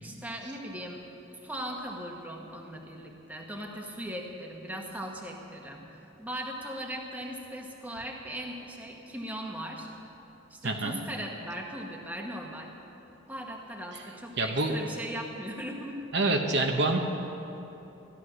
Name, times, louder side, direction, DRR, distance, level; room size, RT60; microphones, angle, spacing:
voice 1, 0.0-1.0 1.3-5.9 6.2-9.9 10.5-12.7 13.3-16.0, equal, 10° right, 0 dB, 1.2 m, -39 dB
voice 2, 10.6-11.0 14.4-14.8 16.1-17.0, right 2 dB, 55° right, 3 dB, 1.0 m, -26 dB
15.5 x 11.5 x 6.3 m, 3.0 s
head